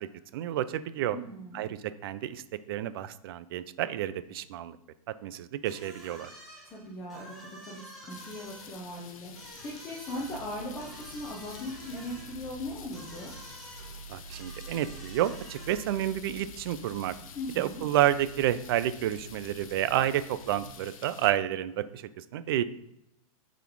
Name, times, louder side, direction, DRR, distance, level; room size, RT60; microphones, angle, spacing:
voice 1, 0.0-1.2 1.5-2.4 2.7-4.8 5.2-6.3 14.1-17.1 17.6-22.6, right 12 dB, 40° right, 14 dB, 0.4 m, -30 dB
voice 2, 1.1-1.6 6.6-13.3 17.3-17.8, left 1 dB, 15° left, -3 dB, 1.0 m, -39 dB
sound 1, 5.6-16.1, right 1 dB, ahead, 1.6 m, -50 dB
sound 2, 8.1-21.3, left 7 dB, 65° left, 0.9 m, -50 dB
sound 3, 10.1-20.7, right 3 dB, 20° right, 2.3 m, -49 dB
6.8 x 4.1 x 4.6 m, 0.80 s
hypercardioid pair, 160°, 19 cm